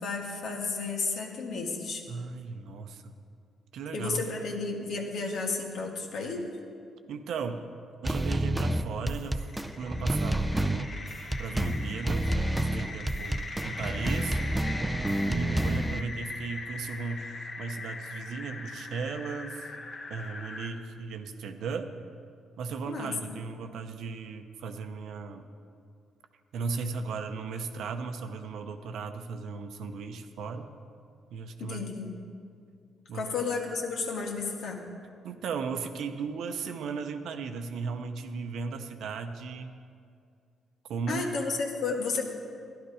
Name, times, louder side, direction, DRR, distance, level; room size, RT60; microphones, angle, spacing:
voice 1, 0.0-2.0 3.9-6.5 22.9-23.3 31.6-32.1 33.1-34.8 41.1-42.2, left 4 dB, 70° left, 1 dB, 1.8 m, -32 dB
voice 2, 2.1-3.1 3.7-4.2 7.1-7.7 8.0-9.5 9.8-11.0 11.4-14.4 15.2-19.7 20.1-22.0 22.6-25.5 26.5-30.7 31.3-31.9 33.1-33.3 35.2-39.7 40.9-41.2, right 5 dB, 75° right, 7 dB, 0.8 m, -36 dB
sound 1, 8.0-16.0, right 1 dB, 10° right, 0.5 m, -29 dB
sound 2, 8.8-20.7, left 2 dB, 40° left, 1.3 m, -41 dB
12.0 x 11.5 x 4.9 m, 2.3 s
cardioid pair, 90°, 0 cm